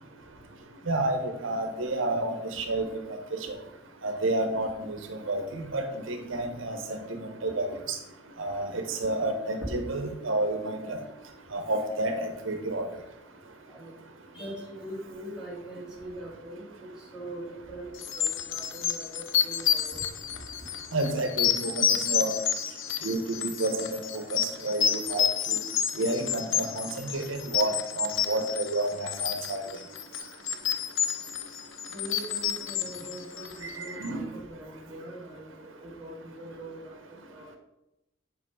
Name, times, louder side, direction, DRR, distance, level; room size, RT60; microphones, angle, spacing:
voice 1, 0.9-2.9 4.0-7.7 8.4-11.0 11.5-12.8 20.9-22.3 23.0-25.6 26.0-29.6 34.0-34.3, right 2 dB, 80° right, 6 dB, 1.1 m, -30 dB
voice 2, 14.3-17.4 17.7-19.1 19.4-20.0 31.9-37.0 37.3-37.5, right 1 dB, 5° right, -5 dB, 2.1 m, -42 dB
sound 1, 18.0-33.8, left 9 dB, 75° left, 0.7 m, -29 dB
7.9 x 5.3 x 4.8 m, 0.90 s
head